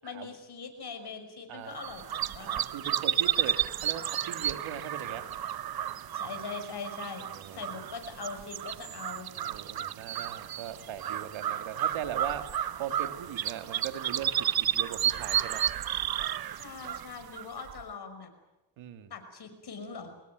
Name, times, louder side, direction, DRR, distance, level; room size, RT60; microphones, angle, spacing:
voice 1, 0.0-2.5 6.1-7.3 7.5-9.3 16.5-18.3 19.1-20.1, left 5 dB, 55° left, 7 dB, 5.8 m, -41 dB
voice 2, 1.5-1.8 2.4-5.2 7.3-7.8 9.4-15.7 18.8-19.1, right 9 dB, 85° right, 8 dB, 2.2 m, -40 dB
sound 1, 1.8-17.8, right 10 dB, 50° right, 0.9 m, -32 dB
24.0 x 20.5 x 9.4 m, 0.99 s
cardioid pair, 80°, 46 cm